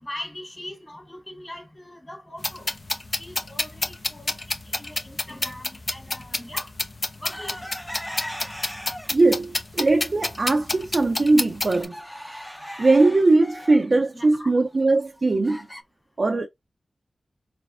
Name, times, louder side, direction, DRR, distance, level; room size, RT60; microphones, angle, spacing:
voice 1, 0.0-2.7 3.2-4.4 4.7-6.7 7.2-7.5 14.1-14.5, left 1 dB, 25° left, 2.0 m, -40 dB
sound 1, 2.4-11.8, left 2 dB, 50° left, 0.8 m, -29 dB
sound 2, 7.3-9.3 9.8-10.4 10.8-10.9 11.2-15.8, equal, 5° left, 0.7 m, -39 dB
voice 2, 9.1-12.0 12.8-15.6 16.2-16.5, right 2 dB, 60° right, 0.5 m, -20 dB
4.2 x 3.3 x 2.4 m
cardioid pair, 40°, 0 cm